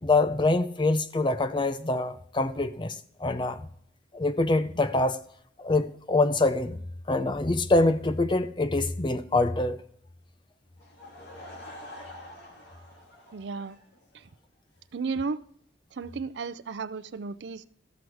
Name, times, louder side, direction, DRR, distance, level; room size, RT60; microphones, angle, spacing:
voice 1, 0.0-3.7 4.1-5.2 5.6-6.8 7.1-9.8, left 2 dB, 25° left, 0.5 m, -25 dB
Laughter / Crowd, 10.8-14.3, left 1 dB, 70° left, 2.7 m, -46 dB
voice 2, 13.3-13.8 14.1-14.3 14.9-15.4 15.9-17.6, right 4 dB, 70° right, 0.5 m, -34 dB
13.5 x 6.2 x 4.8 m
head